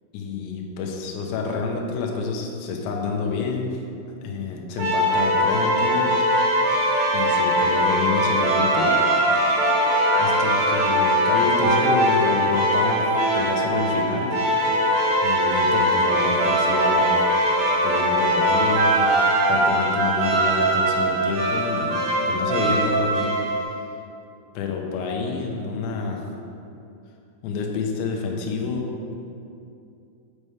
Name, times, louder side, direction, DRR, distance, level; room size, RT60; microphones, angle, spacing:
voice 1, 0.1-3.8 4.2-6.1 7.1-8.9 9.3-9.8 10.2-13.0 13.3-14.4 15.2-17.2 17.8-19.1 19.5-23.3 24.6-26.3 27.4-29.1, left 4 dB, 85° left, 1 dB, 2.5 m, -28 dB
sound 1, 4.8-23.6, right 1 dB, 70° right, 2.3 m, -21 dB
6.9 x 5.3 x 3.3 m, 2.6 s
omnidirectional pair, 5.8 m